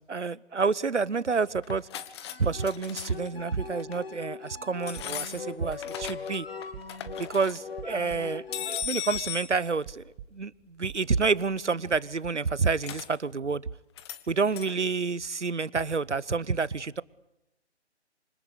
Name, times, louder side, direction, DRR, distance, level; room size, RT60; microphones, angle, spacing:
voice 1, 0.0-1.9 2.4-6.5 7.2-10.0 10.3-13.6 14.3-17.0, right 4 dB, 85° right, 1.0 m, -29 dB
sound 1, 1.6-2.4 2.6-3.3 3.8-4.0 4.8-6.4 6.6-7.6 8.5-9.5 12.8-13.1 14.0-14.2 14.5-14.7, left 10 dB, 25° left, 1.4 m, -37 dB
sound 2, 1.8-8.8, left 5 dB, 55° left, 1.8 m, -41 dB
sound 3, 5.0-9.6 9.8-10.6 10.9-11.5 11.9-12.5, right 9 dB, 20° right, 1.2 m, -46 dB
26.5 x 25.5 x 8.5 m
figure-of-eight pair, 140°, 35 cm